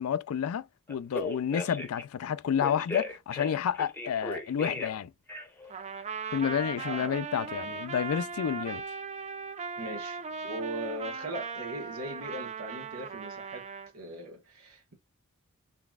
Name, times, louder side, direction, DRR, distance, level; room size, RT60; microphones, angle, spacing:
voice 1, 0.0-5.1 6.3-8.8, left 8 dB, 75° left, 0.3 m, -30 dB
Telephone, 0.9-2.0 2.6-5.0 5.3-5.7, left 2 dB, 10° left, 0.7 m, -37 dB
Trumpet, 5.7-13.9, right 5 dB, 30° right, 0.5 m, -38 dB
voice 2, 6.7-7.7 9.8-13.7 13.9-14.9, right 1 dB, 85° right, 1.5 m, -40 dB
3.9 x 3.4 x 2.3 m
head